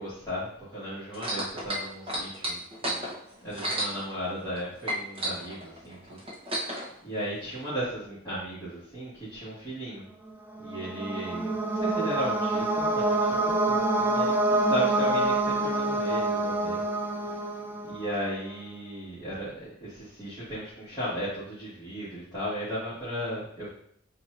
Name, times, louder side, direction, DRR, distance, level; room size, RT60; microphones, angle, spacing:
voice 1, 0.0-3.0 3.4-6.2 7.0-10.0 10.6-16.8 17.8-23.7, equal, 25° left, -14 dB, 1.8 m, -36 dB
sound 1, 1.1-4.6 4.8-6.9 7.7-7.8, right 1 dB, 30° right, 0.9 m, -32 dB
sound 2, 10.6-18.3, right 2 dB, 10° right, 0.4 m, -26 dB
7.7 x 2.6 x 2.6 m, 0.68 s
head